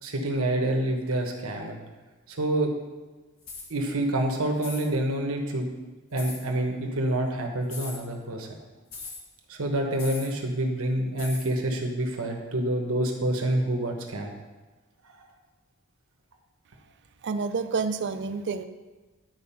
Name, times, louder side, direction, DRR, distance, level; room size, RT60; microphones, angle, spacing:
voice 1, 0.0-1.8 2.3-2.7 3.7-5.7 6.1-8.5 9.5-14.3, right 1 dB, 75° right, 2 dB, 1.2 m, -27 dB
sound 1, 3.4-3.7 4.6-4.9 6.2-6.4 7.6-8.0 8.9-9.2 10.0-10.3 11.2-11.5, left 4 dB, 70° left, 1.9 m, -39 dB
voice 2, 17.2-18.7, right 4 dB, 55° right, 10 dB, 0.5 m, -29 dB
10.5 x 4.6 x 5.7 m, 1.2 s
head